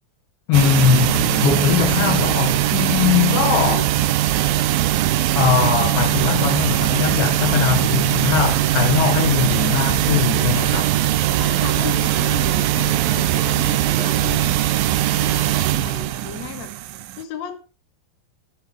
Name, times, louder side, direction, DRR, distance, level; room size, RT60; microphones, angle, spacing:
voice 1, 0.5-3.9 5.4-11.0, left 7 dB, 75° left, 3.3 m, -20 dB
sound 1, 0.5-17.2, right 13 dB, 85° right, 2.5 m, -20 dB
voice 2, 11.4-16.9 17.2-17.6, left 9 dB, 55° left, 2.4 m, -35 dB
13.0 x 11.0 x 3.2 m
omnidirectional pair, 4.2 m